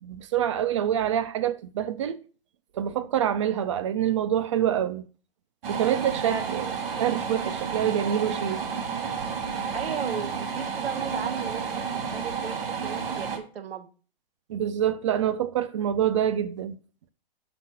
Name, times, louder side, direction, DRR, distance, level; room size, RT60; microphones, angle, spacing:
voice 1, 0.0-2.2 2.7-5.1 5.7-6.6 7.0-8.6 14.5-16.8, right 10 dB, 35° right, 0.4 m, -26 dB
sound 1, 5.6-13.4, right 6 dB, 70° right, 1.7 m, -31 dB
voice 2, 6.2-6.7 9.7-11.9 12.1-13.9, right 6 dB, 85° right, 1.0 m, -35 dB
5.9 x 3.6 x 5.6 m
hypercardioid pair, 150°, 29 cm